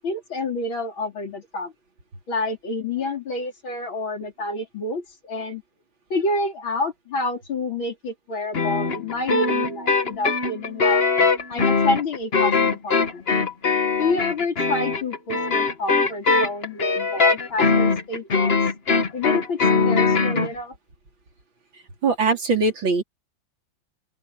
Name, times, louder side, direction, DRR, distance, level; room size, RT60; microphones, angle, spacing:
voice 1, 0.0-1.7 2.3-5.6 6.1-11.0 11.5-13.3 14.0-18.6 19.1-20.7, left 2 dB, 85° left, 4.6 m, -28 dB
sound 1, 8.5-20.5, left 4 dB, 35° left, 1.5 m, -21 dB
voice 2, 22.0-23.0, right 3 dB, 75° right, 4.7 m, -21 dB
open air
omnidirectional pair, 2.1 m